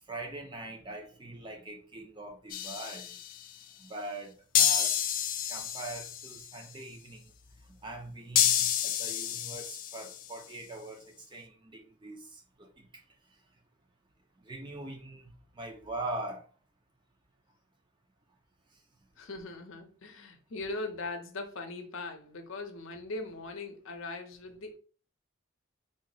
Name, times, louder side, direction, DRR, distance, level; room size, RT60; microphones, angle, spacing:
voice 1, 0.1-3.1 3.8-7.3 7.8-12.7 14.5-16.5, right 2 dB, 20° right, 0.5 m, -42 dB
sound 1, 2.5-3.4 4.5-6.4 8.4-10.3, left 9 dB, 40° left, 0.3 m, -29 dB
voice 2, 19.2-24.8, left 2 dB, 70° left, 0.6 m, -40 dB
3.7 x 2.0 x 3.8 m
head